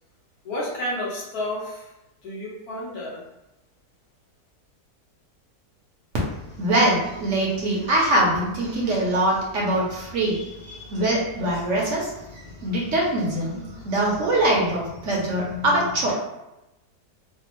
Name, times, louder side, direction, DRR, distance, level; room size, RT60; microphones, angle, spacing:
voice 1, 0.4-1.9 2.2-3.2, left 1 dB, 70° left, -4 dB, 1.4 m, -31 dB
voice 2, 6.6-16.1, right 1 dB, 60° right, -3 dB, 0.9 m, -23 dB
3.4 x 2.0 x 2.9 m, 0.94 s
omnidirectional pair, 1.7 m